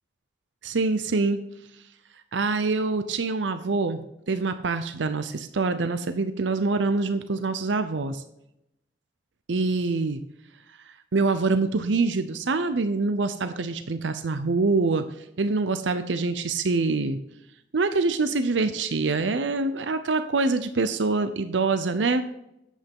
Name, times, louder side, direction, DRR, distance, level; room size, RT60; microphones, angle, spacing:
voice 1, 0.6-1.4 2.3-4.0 4.3-8.2 9.5-10.2 11.1-15.0 15.4-17.2 17.7-22.2, right 3 dB, 90° right, 10 dB, 0.7 m, -25 dB
10.0 x 8.2 x 3.7 m, 0.84 s
head